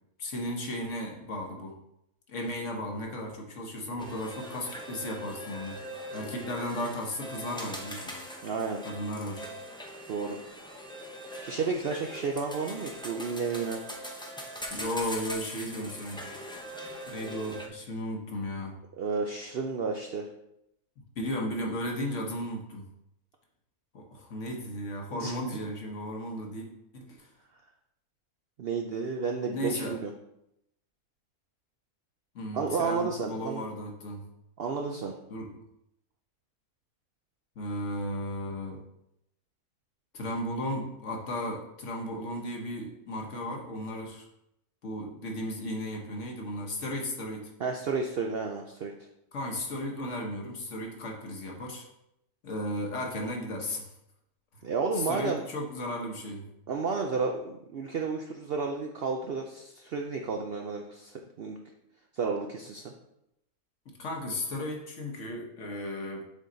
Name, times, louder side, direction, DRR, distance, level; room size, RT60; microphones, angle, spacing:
voice 1, 0.2-1.8 2.3-8.2 8.8-9.4 14.7-16.2 17.1-18.8 21.1-22.9 23.9-26.7 26.9-27.3 29.5-30.0 32.3-34.2 35.3-35.5 37.6-38.8 40.1-44.3 44.8-47.5 49.3-51.9 52.4-53.9 54.5-54.6 55.0-56.5 64.0-66.2, left 1 dB, 55° left, 1 dB, 1.4 m, -35 dB
sound 1, 4.0-17.7, equal, 5° left, 0.3 m, -41 dB
voice 2, 8.4-8.8 10.1-10.4 11.4-13.8 19.0-20.3 25.1-25.3 28.6-30.1 32.5-33.6 34.6-35.1 47.6-48.9 54.6-55.4 56.7-61.6 62.1-62.9, right 4 dB, 65° right, 3 dB, 0.6 m, -32 dB
7.4 x 3.8 x 3.9 m, 0.81 s
omnidirectional pair, 1.6 m